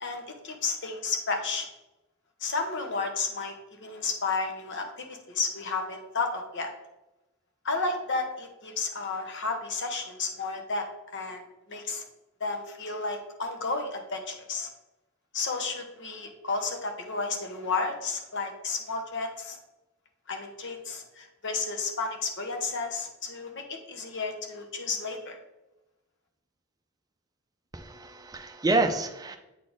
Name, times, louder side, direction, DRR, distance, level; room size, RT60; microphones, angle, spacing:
voice 1, 0.0-1.7 2.4-3.5 3.8-6.7 7.6-12.0 12.4-14.7 15.3-19.6 20.3-25.4, left 4 dB, 55° left, 4 dB, 1.0 m, -32 dB
voice 2, 27.7-29.4, right 2 dB, 15° right, 6 dB, 0.5 m, -28 dB
8.3 x 4.2 x 3.5 m, 0.97 s
head